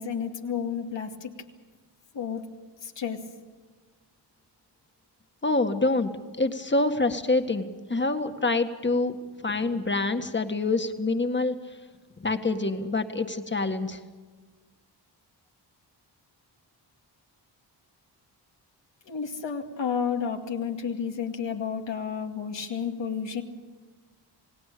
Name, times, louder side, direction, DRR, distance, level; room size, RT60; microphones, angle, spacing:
voice 1, 0.0-1.3 2.1-2.5 2.8-3.2 19.1-23.4, left 6 dB, 85° left, 3 dB, 2.4 m, -31 dB
voice 2, 5.4-6.1 6.4-9.2 9.4-11.6 12.2-14.0, left 2 dB, 25° left, 7 dB, 1.8 m, -26 dB
28.5 x 18.5 x 6.9 m, 1.4 s
wide cardioid pair, 90°, 43 cm